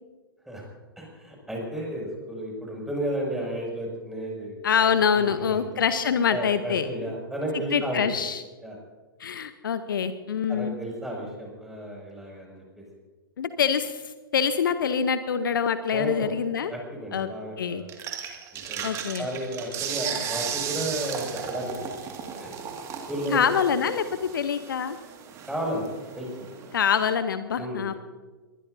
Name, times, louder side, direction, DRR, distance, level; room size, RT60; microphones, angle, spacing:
voice 1, 1.0-5.5 6.3-8.0 8.6-8.8 10.5-12.6 15.9-16.3 16.7-17.9 18.7-18.9 19.2-21.7 22.4-23.5 25.5-25.9 26.2-26.5 27.5-27.9, right 1 dB, 5° right, -2 dB, 6.4 m, -33 dB
voice 2, 4.6-6.9 7.5-8.4 9.2-10.8 13.4-16.7 17.1-17.3 17.6-17.8 18.8-19.3 23.3-24.1 24.3-25.0 26.7-27.9, left 7 dB, 65° left, 11 dB, 0.9 m, -25 dB
sound 1, 17.9-27.1, right 7 dB, 25° right, 2.1 m, -36 dB
22.5 x 20.5 x 2.7 m, 1.3 s
figure-of-eight pair, 115°, 12 cm